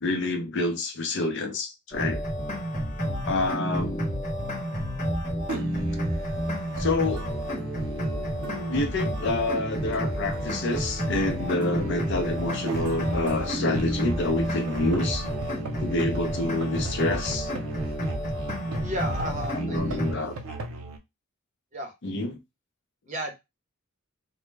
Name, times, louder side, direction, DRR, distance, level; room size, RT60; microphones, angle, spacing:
voice 1, 0.0-2.2 3.2-4.1 6.8-7.3 8.7-15.3 15.8-17.5 19.5-20.3 22.0-22.3, left 2 dB, 55° left, 0.5 m, -28 dB
sound 1, 1.9-20.1, equal, 35° left, 0.8 m, -30 dB
Musical instrument, 5.5-21.0, right 3 dB, 85° right, 0.5 m, -38 dB
voice 2, 18.8-20.3 21.7-21.9 23.1-23.3, right 1 dB, 35° right, 0.6 m, -33 dB
2.1 x 2.0 x 3.2 m
head